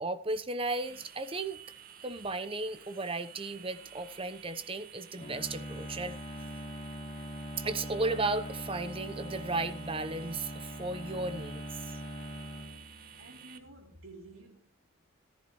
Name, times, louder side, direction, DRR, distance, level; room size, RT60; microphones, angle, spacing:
voice 1, 0.0-1.6 2.0-6.2 7.6-11.6, right 2 dB, 25° right, 1.0 m, -35 dB
sound 1, 0.8-13.6, right 8 dB, 45° right, 1.5 m, -52 dB
Bowed string instrument, 5.1-13.4, equal, 30° left, 2.2 m, -42 dB
voice 2, 13.2-14.7, right 2 dB, 75° right, 3.7 m, -51 dB
14.5 x 14.0 x 3.2 m
head